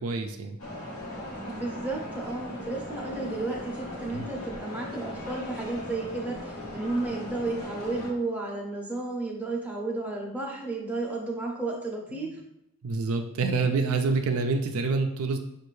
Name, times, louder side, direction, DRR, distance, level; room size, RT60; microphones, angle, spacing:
voice 1, 0.0-0.6 4.1-4.3 12.1-12.3 12.8-15.4, right 4 dB, 65° right, 5 dB, 0.4 m, -27 dB
sound 1, 0.6-8.1, left 1 dB, 90° left, 1.1 m, -38 dB
voice 2, 1.5-12.4, right 2 dB, 5° right, -2 dB, 0.6 m, -32 dB
5.3 x 2.5 x 3.1 m, 0.81 s
head